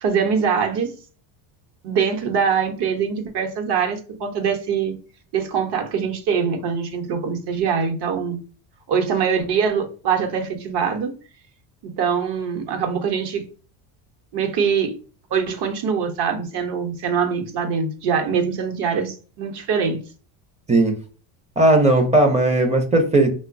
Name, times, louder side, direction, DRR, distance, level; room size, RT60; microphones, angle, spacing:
voice 1, 0.0-0.9 1.8-4.9 5.3-8.4 8.9-11.1 11.8-13.4 14.3-14.9 15.3-20.0, right 6 dB, 50° right, 0.9 m, -23 dB
voice 2, 21.6-23.3, right 2 dB, 15° right, 0.5 m, -16 dB
2.8 x 2.1 x 2.5 m
supercardioid pair, 100°, 50 cm